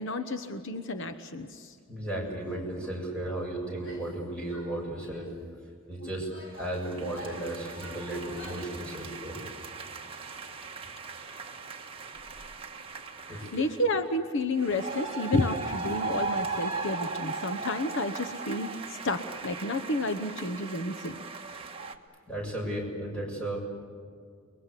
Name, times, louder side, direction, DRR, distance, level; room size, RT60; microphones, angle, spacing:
voice 1, 0.0-1.8 13.2-21.2, left 2 dB, 60° left, 9 dB, 1.0 m, -31 dB
voice 2, 1.9-5.3 5.9-9.4 13.3-13.5 22.3-23.6, right 1 dB, 5° left, -2 dB, 7.6 m, -35 dB
Female speech woman speaking / Yell, 3.7-4.2 4.5-5.3 6.0-8.8, equal, 80° left, 7.7 m, -48 dB
sound 1, 6.5-13.9 14.6-21.9, right 4 dB, 25° right, 1.6 m, -38 dB
29.5 x 22.0 x 8.4 m, 2.2 s
head